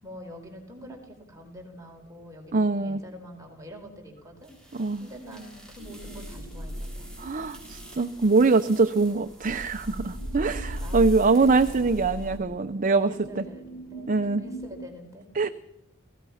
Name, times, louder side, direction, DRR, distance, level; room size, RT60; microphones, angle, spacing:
voice 1, 0.0-7.1 10.8-12.1 13.0-15.3, equal, 15° right, 1 dB, 4.3 m, -45 dB
voice 2, 2.5-3.0 4.8-5.0 7.2-13.1 13.4-13.5 14.1-14.4 15.3-15.5, right 3 dB, 40° right, 9 dB, 0.7 m, -23 dB
sound 1, 4.5-12.4, equal, 5° left, 6.7 m, -38 dB
sound 2, 5.8-14.9, right 3 dB, 85° left, 2.9 m, -46 dB
29.0 x 18.0 x 5.7 m, 0.89 s
head